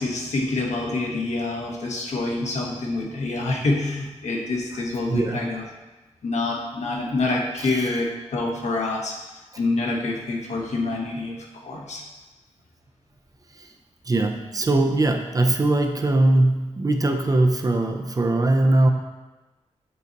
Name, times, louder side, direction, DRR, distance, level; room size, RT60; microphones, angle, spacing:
voice 1, 0.0-5.6 6.2-9.2 9.6-11.4 11.6-12.0, left 2 dB, 75° left, -1 dB, 1.2 m, -26 dB
voice 2, 5.1-5.5 7.6-7.9 13.6-13.7 14.1-18.9, right 2 dB, 30° right, 4 dB, 0.5 m, -21 dB
7.4 x 4.1 x 4.0 m, 1.1 s
wide cardioid pair, 150°, 12 cm